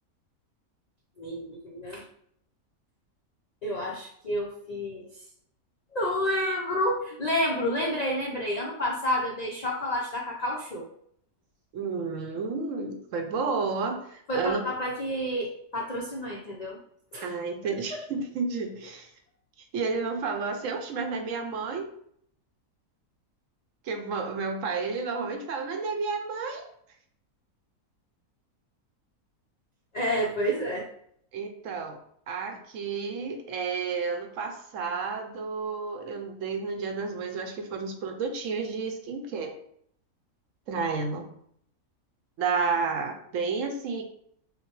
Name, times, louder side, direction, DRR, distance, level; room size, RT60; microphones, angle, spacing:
voice 1, 1.2-2.0 3.6-5.1 5.9-10.9 14.3-16.8 17.1-17.4 17.9-18.0 29.9-30.9, equal, 70° left, -2 dB, 0.4 m, -29 dB
voice 2, 11.7-14.6 17.2-19.1 19.7-21.9 23.8-26.7 31.3-32.0 32.3-39.5 40.7-41.3 42.4-44.0, right 4 dB, 65° right, 4 dB, 0.9 m, -31 dB
6.3 x 2.2 x 3.0 m, 0.67 s
omnidirectional pair, 1.6 m